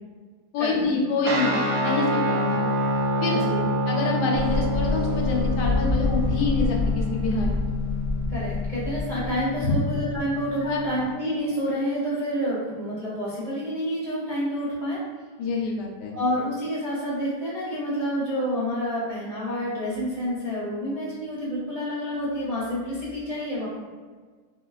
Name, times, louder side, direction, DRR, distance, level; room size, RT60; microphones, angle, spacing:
voice 1, 0.5-2.6 3.2-3.4 3.9-7.6 9.6-9.7 10.6-10.8 15.4-16.2, left 3 dB, 90° left, -1 dB, 1.3 m, -27 dB
Guitar, 1.2-11.1, left 1 dB, 70° right, 0.9 m, -27 dB
voice 2, 3.3-3.7 8.3-15.0 16.1-23.7, equal, 35° right, -10 dB, 0.5 m, -28 dB
sound 1, 4.3-11.0, left 2 dB, 25° left, 0.6 m, -28 dB
3.7 x 2.2 x 2.3 m, 1.5 s
omnidirectional pair, 1.8 m